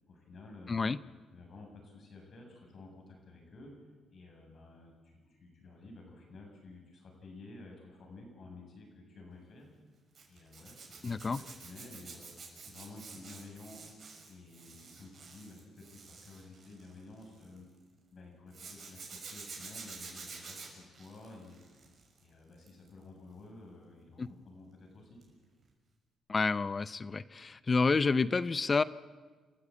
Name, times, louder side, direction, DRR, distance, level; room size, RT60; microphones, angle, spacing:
voice 1, 0.0-0.8 1.3-3.7 4.1-9.7 10.3-13.8 14.3-17.7 18.1-21.6 22.2-25.2, left 2 dB, 55° left, 1 dB, 7.7 m, -52 dB
voice 2, 0.7-1.0 11.0-11.4 24.2-24.3 26.3-28.8, left 4 dB, 30° left, 17 dB, 0.7 m, -29 dB
Zipper (clothing), 10.1-17.6 18.5-22.2 22.5-22.9 25.2-25.4 25.6-25.7, right 4 dB, 45° right, 6.2 m, -49 dB
28.5 x 13.5 x 8.7 m, 1.3 s
cardioid pair, 90°, 0 cm